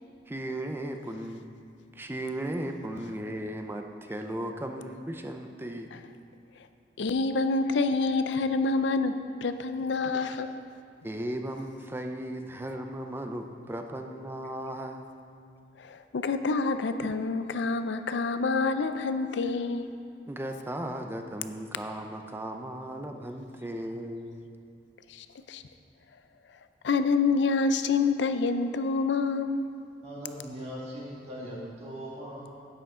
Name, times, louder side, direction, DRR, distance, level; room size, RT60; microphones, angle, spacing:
voice 1, 0.3-1.4 2.0-5.9 11.0-15.0 20.3-24.4, right 1 dB, 10° right, 5 dB, 0.5 m, -36 dB
voice 2, 7.0-10.5 15.8-19.9 25.1-25.6 26.8-29.6, left 4 dB, 80° left, 10 dB, 0.5 m, -27 dB
voice 3, 30.0-32.6, equal, 35° right, -6 dB, 2.0 m, -40 dB
10.5 x 9.4 x 3.7 m, 2.5 s
head